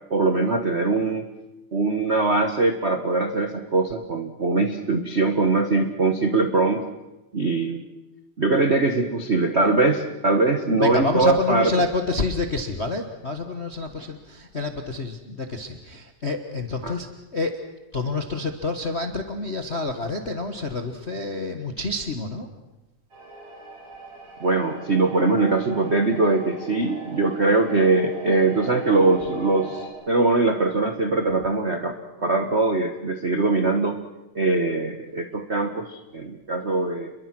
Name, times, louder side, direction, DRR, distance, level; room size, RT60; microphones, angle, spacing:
voice 1, 0.1-1.3 1.7-6.9 7.3-7.8 8.4-11.7 16.8-16.9 24.4-31.9 32.2-34.0 34.3-37.1, right 3 dB, 85° right, 6 dB, 0.5 m, -22 dB
voice 2, 10.8-17.1 17.3-17.6 17.9-22.5, left 3 dB, 55° left, 6 dB, 0.7 m, -28 dB
sound 1, 23.1-29.9, right 2 dB, 50° right, 7.1 m, -40 dB
29.0 x 22.5 x 6.1 m, 1.0 s
omnidirectional pair, 3.5 m